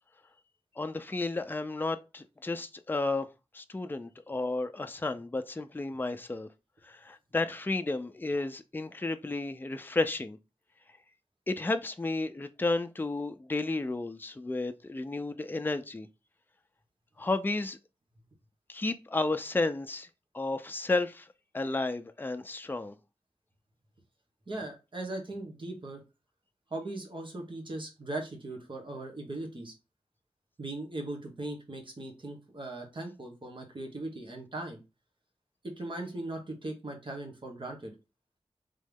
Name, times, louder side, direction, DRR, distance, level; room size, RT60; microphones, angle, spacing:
voice 1, 0.8-3.3 3.5-6.5 6.8-10.4 11.5-16.1 17.2-17.8 18.7-20.1 20.3-21.3 21.5-22.9, left 2 dB, 20° left, 0.4 m, -32 dB
voice 2, 24.5-26.0 26.7-29.7 30.6-34.8 35.6-37.9, right 2 dB, 55° right, 1.5 m, -39 dB
3.7 x 3.1 x 3.5 m
wide cardioid pair, 65°, 10 cm